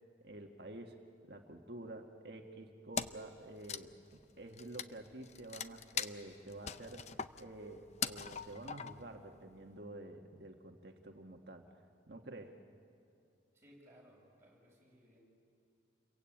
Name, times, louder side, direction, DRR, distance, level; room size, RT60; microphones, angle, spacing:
voice 1, 0.2-1.0 1.2-4.0 4.4-7.1 7.4-11.6 12.1-12.5, right 1 dB, 55° right, 3 dB, 1.6 m, -49 dB
Wood, 2.9-3.3 3.6-9.2, left 7 dB, 35° left, 0.6 m, -41 dB
voice 2, 13.5-15.2, equal, 15° right, -4 dB, 7.2 m, -62 dB
29.5 x 23.0 x 8.8 m, 2.6 s
head